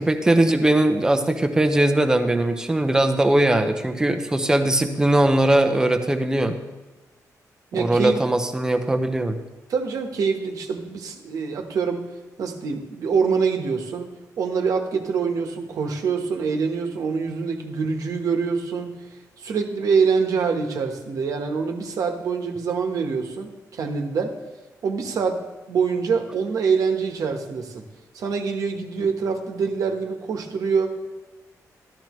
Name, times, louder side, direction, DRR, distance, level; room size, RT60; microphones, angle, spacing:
voice 1, 0.0-6.6 7.7-9.4, right 1 dB, 10° right, 7 dB, 0.7 m, -20 dB
voice 2, 7.7-8.2 9.7-12.0 12.4-14.1 14.4-19.0 19.4-24.3 24.8-25.4 25.7-27.8 28.1-30.9, right 5 dB, 70° right, 4 dB, 1.2 m, -25 dB
13.0 x 12.0 x 3.1 m, 1.1 s
wide cardioid pair, 165°, 6 cm